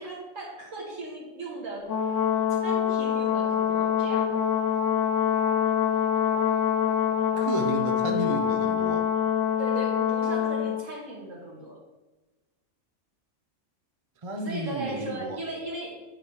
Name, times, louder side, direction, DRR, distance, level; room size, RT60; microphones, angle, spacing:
voice 1, 0.0-1.9 2.6-4.3 9.6-11.8 14.3-16.0, right 2 dB, 65° right, -3 dB, 2.2 m, -37 dB
Brass instrument, 1.9-10.8, left 8 dB, 65° left, 1.1 m, -25 dB
voice 2, 7.4-9.0 14.2-15.4, right 2 dB, 35° right, 3 dB, 0.6 m, -32 dB
8.8 x 4.0 x 4.7 m, 1.1 s
omnidirectional pair, 1.4 m